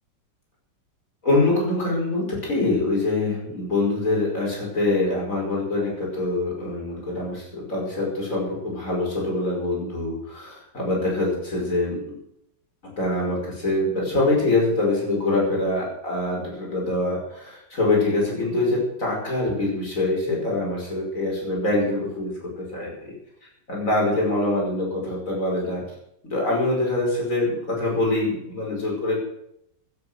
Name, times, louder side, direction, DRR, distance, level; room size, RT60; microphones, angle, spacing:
voice 1, 1.2-12.0 13.0-23.1 23.7-25.8 26.3-29.2, left 2 dB, 45° left, -2 dB, 5.9 m, -24 dB
17.0 x 9.4 x 6.5 m, 0.77 s
omnidirectional pair, 2.0 m